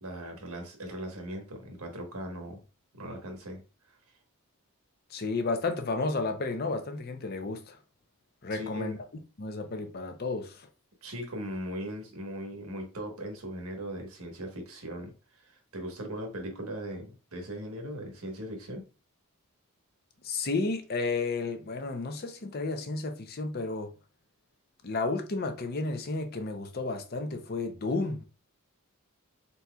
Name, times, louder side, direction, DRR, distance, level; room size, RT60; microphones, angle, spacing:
voice 1, 0.0-2.6 2.9-3.6 3.9-4.0 8.5-9.0 11.0-18.8, equal, 75° right, 1.3 m, -39 dB
voice 2, 5.1-7.8 8.4-9.0 9.4-10.7 20.2-23.9 24.8-28.2, left 3 dB, 45° left, 0.6 m, -32 dB
4.2 x 4.1 x 2.3 m
head